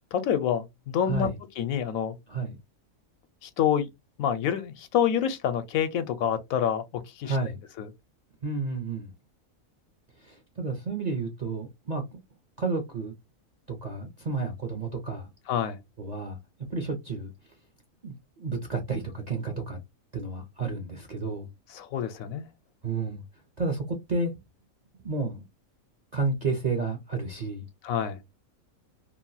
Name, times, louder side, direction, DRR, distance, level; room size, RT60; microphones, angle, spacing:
voice 1, 0.1-1.3 1.6-2.1 3.4-3.9 4.2-7.4 7.8-7.9 15.5-15.8 21.7-22.5 27.8-28.2, left 9 dB, 80° left, 1.0 m, -27 dB
voice 2, 1.0-1.3 2.3-2.6 7.2-7.6 8.4-9.1 10.2-12.2 12.6-13.1 13.7-15.3 16.0-16.4 16.7-17.3 18.0-19.8 20.1-21.5 22.8-23.2 23.6-24.3 25.0-25.5 26.1-27.7, right 3 dB, 50° right, 0.5 m, -31 dB
2.9 x 2.3 x 2.5 m
omnidirectional pair, 1.5 m